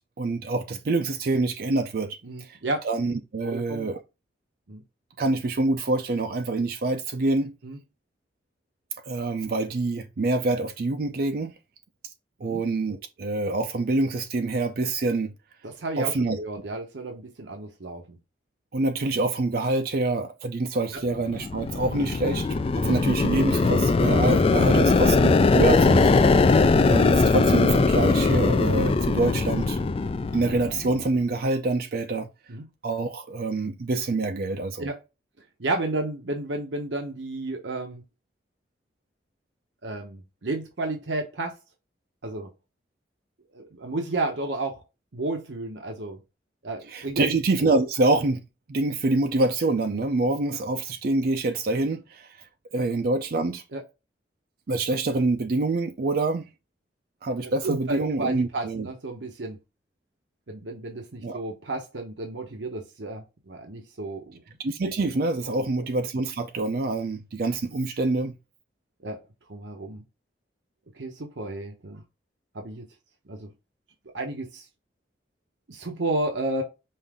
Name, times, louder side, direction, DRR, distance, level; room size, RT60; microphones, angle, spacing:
voice 1, 0.2-2.6 2.8-4.0 5.2-7.5 9.0-11.5 12.4-15.3 16.0-16.4 18.7-22.5 22.7-26.1 26.9-29.8 30.3-32.3 32.8-34.9 46.9-48.4 48.7-52.3 52.7-53.6 54.7-56.5 57.2-58.9 61.2-61.4 64.6-68.4, right 2 dB, 55° right, 0.5 m, -26 dB
voice 2, 2.2-2.9 3.4-3.9 4.7-4.8 7.6-7.8 12.4-12.6 15.6-18.2 20.9-21.0 30.3-30.4 32.5-32.6 34.8-35.0 35.6-38.0 39.8-41.6 42.2-42.5 43.5-44.8 45.1-46.2 46.6-47.3 53.7-53.8 57.4-59.6 60.5-64.4 65.5-65.7 69.0-69.2 69.5-70.0 70.9-72.0 72.5-72.8 73.3-73.5 74.1-74.7 75.7-76.6, right 2 dB, 90° right, 0.9 m, -32 dB
sound 1, 21.2-31.0, left 3 dB, 30° left, 0.3 m, -20 dB
5.5 x 2.6 x 3.4 m
head